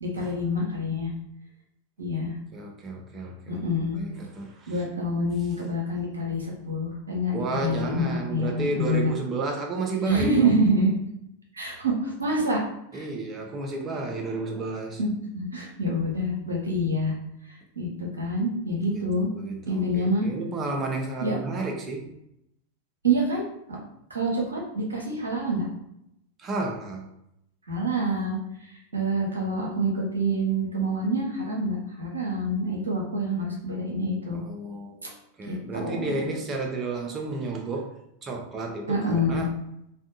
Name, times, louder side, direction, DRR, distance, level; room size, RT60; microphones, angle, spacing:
voice 1, 0.0-1.1 2.0-2.3 3.5-4.0 4.7-9.1 10.1-10.9 11.5-12.6 12.9-13.1 15.0-17.1 17.5-19.3 19.7-20.3 21.2-21.4 23.0-23.4 23.7-23.8 24.1-25.7 27.7-28.4 28.7-34.4 35.5-36.3 38.9-39.5, right 1 dB, 75° right, -2 dB, 0.7 m, -27 dB
voice 2, 2.5-4.7 7.3-10.5 12.9-15.0 18.9-22.0 26.4-27.1 34.3-35.1 35.4-37.9 38.2-39.5, right 3 dB, 25° right, 1 dB, 0.5 m, -32 dB
2.6 x 2.2 x 2.5 m, 0.79 s
figure-of-eight pair, 90°, 0 cm